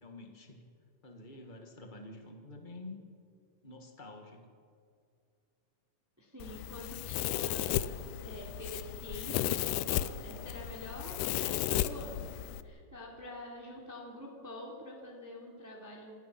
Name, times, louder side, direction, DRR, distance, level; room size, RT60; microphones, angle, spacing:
voice 1, 0.0-0.7 1.0-3.0 3.6-4.5, left 2 dB, 40° left, 3 dB, 0.6 m, -48 dB
voice 2, 6.2-7.9 8.2-16.1, left 1 dB, 5° right, -3 dB, 3.0 m, -46 dB
Domestic sounds home sounds, 6.4-12.6, left 13 dB, 75° left, 2.0 m, -34 dB
28.0 x 16.5 x 5.9 m, 2.3 s
omnidirectional pair, 3.9 m